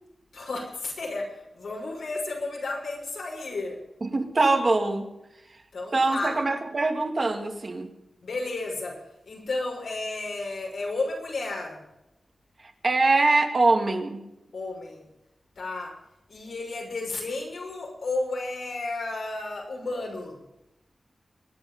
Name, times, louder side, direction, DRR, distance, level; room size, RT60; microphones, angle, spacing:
voice 1, 0.3-3.8 5.7-6.4 8.2-11.8 14.5-15.0 15.6-16.0 16.3-20.4, left 2 dB, 85° left, -1 dB, 6.1 m, -32 dB
voice 2, 4.0-5.1 5.9-7.9 12.8-14.2, right 3 dB, 45° right, 4 dB, 2.3 m, -23 dB
23.5 x 10.5 x 5.5 m, 0.89 s
wide cardioid pair, 130°, 0 cm